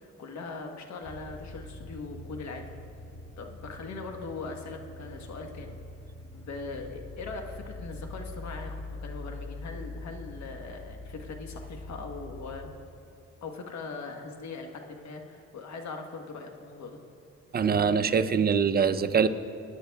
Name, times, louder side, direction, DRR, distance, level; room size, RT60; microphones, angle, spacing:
voice 1, 0.0-2.6 3.4-5.8 6.3-12.7 13.4-17.0, left 3 dB, 65° left, 4 dB, 1.2 m, -40 dB
sound 1, 1.0-12.8, left 2 dB, 45° left, 1.5 m, -43 dB
voice 2, 17.5-19.3, right 6 dB, 30° right, 10 dB, 0.5 m, -23 dB
21.0 x 10.0 x 2.3 m, 2.6 s
cardioid pair, 90°, 30 cm